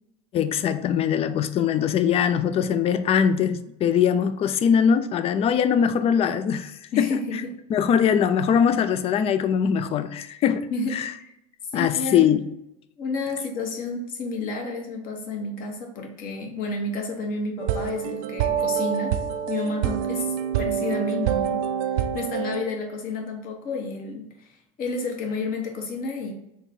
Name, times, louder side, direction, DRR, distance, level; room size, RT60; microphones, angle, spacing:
voice 1, 0.3-7.2 7.7-11.1 11.7-12.4, left 8 dB, 30° left, 0.3 m, -22 dB
voice 2, 6.9-7.5 10.7-10.9 11.2-11.3 11.7-12.3 13.0-19.2 19.5-21.6 22.0-26.3, left 3 dB, 45° left, 1.0 m, -31 dB
sound 1, 17.6-22.6, right 9 dB, 65° right, 0.4 m, -26 dB
3.7 x 2.3 x 4.2 m
hypercardioid pair, 75°, 20 cm